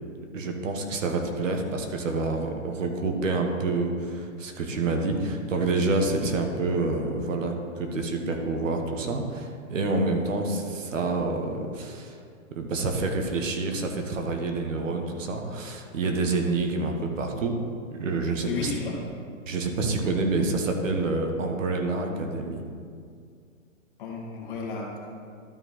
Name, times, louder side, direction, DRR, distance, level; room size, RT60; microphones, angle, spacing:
voice 1, 0.3-12.2 12.5-17.6 17.9-18.7 19.5-22.6, right 3 dB, 65° right, 3 dB, 1.4 m, -28 dB
voice 2, 18.4-19.0 24.0-25.0, left 4 dB, 40° left, -2 dB, 1.7 m, -33 dB
12.5 x 4.6 x 4.2 m, 2.2 s
hypercardioid pair, 165°, 41 cm